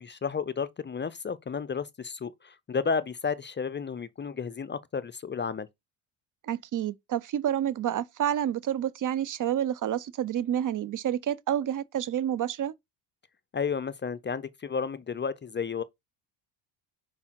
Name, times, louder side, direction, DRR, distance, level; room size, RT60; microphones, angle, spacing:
voice 1, 0.0-5.7 13.5-15.8, left 5 dB, 25° left, 0.5 m, -32 dB
voice 2, 6.5-12.7, right 10 dB, 40° right, 0.6 m, -29 dB
5.5 x 4.8 x 4.5 m
supercardioid pair, 75°, 49 cm